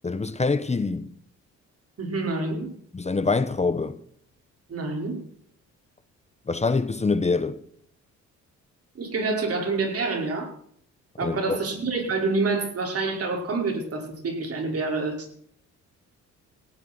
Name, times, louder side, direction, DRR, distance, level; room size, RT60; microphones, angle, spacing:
voice 1, 0.0-1.1 2.9-4.0 6.5-7.6 11.2-11.6, left 4 dB, 20° left, 1.2 m, -25 dB
voice 2, 2.0-2.7 4.7-5.2 9.0-10.5 11.2-15.3, right 3 dB, 50° right, 5.5 m, -27 dB
18.5 x 15.5 x 4.6 m
cardioid pair, 90°, 30 cm